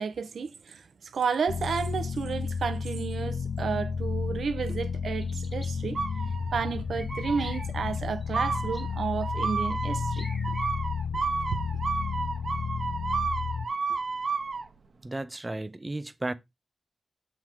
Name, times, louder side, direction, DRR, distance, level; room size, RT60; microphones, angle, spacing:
voice 1, 0.0-6.0 6.5-10.3, right 5 dB, 90° right, 0.8 m, -32 dB
sound 1, 1.5-13.7, left 6 dB, 80° left, 0.5 m, -32 dB
sound 2, 5.2-5.7 6.9-7.7 7.9-9.2 10.1-10.7, left 1 dB, 15° left, 1.5 m, -46 dB
sound 3, 6.0-6.7 7.1-7.6 8.3-14.6, right 4 dB, 55° right, 0.9 m, -32 dB
voice 2, 15.0-16.3, right 2 dB, 20° right, 0.5 m, -34 dB
7.5 x 3.6 x 4.5 m
wide cardioid pair, 150°, 0 cm